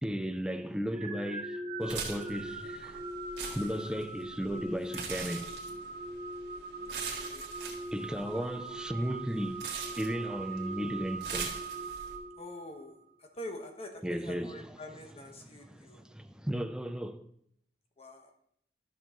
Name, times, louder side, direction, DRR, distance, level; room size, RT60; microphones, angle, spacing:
voice 1, 0.0-3.1 3.5-5.5 7.9-9.6 10.0-11.6 14.0-14.6 15.7-17.3, equal, 5° right, 0.4 m, -35 dB
sound 1, 0.9-12.8, right 2 dB, 30° right, 1.3 m, -41 dB
sound 2, 1.8-12.2, right 5 dB, 75° right, 1.8 m, -42 dB
voice 2, 6.9-7.5 8.5-8.8 12.3-16.0 18.0-18.3, left 1 dB, 35° left, 1.2 m, -46 dB
13.0 x 6.3 x 3.0 m
head